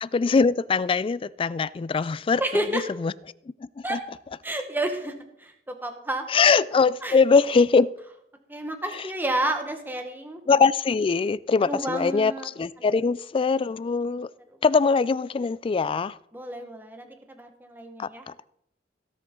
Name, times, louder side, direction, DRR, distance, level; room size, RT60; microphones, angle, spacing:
voice 1, 0.0-3.1 3.6-4.0 6.3-7.9 8.9-9.1 10.5-14.3 14.6-16.2 18.0-18.3, left 4 dB, 30° left, 0.3 m, -22 dB
voice 2, 2.4-2.8 3.8-4.0 4.4-5.1 5.4-6.2 7.0-7.2 8.5-10.4 11.7-12.5 16.3-18.2, right 1 dB, 10° right, 1.3 m, -30 dB
17.0 x 7.6 x 3.7 m
head